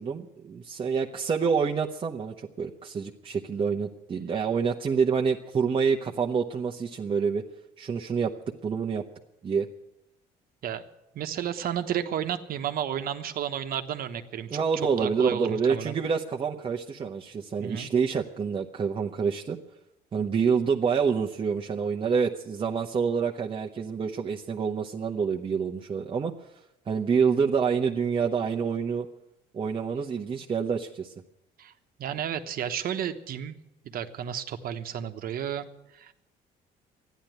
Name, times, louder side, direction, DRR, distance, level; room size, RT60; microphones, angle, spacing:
voice 1, 0.0-7.4 7.8-8.3 8.6-9.0 9.4-9.7 14.5-19.6 20.1-26.3 26.9-29.1 29.5-31.1, right 6 dB, 30° right, 0 dB, 0.9 m, -27 dB
voice 2, 11.1-16.0 17.6-17.9 31.6-31.7 32.0-33.5 33.8-35.7 35.9-36.1, right 9 dB, 60° right, 8 dB, 1.2 m, -32 dB
13.5 x 10.5 x 9.3 m, 0.88 s
cardioid pair, 110°, 17 cm